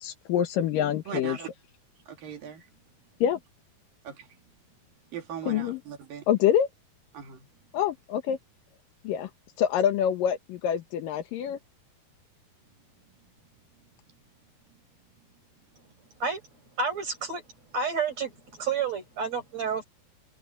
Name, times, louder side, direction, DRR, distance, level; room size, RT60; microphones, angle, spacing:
voice 1, 0.0-1.4 3.2-3.4 5.4-5.8 6.3-6.7 7.7-8.4 9.0-9.3 9.6-11.6, left 9 dB, 75° left, 2.7 m, -26 dB
voice 2, 1.1-1.5 2.1-2.7 4.0-4.3 5.1-6.2 7.1-7.5, right 8 dB, 70° right, 4.1 m, -39 dB
voice 3, 16.8-17.4 17.7-19.8, right 5 dB, 45° right, 6.9 m, -30 dB
omnidirectional pair, 4.2 m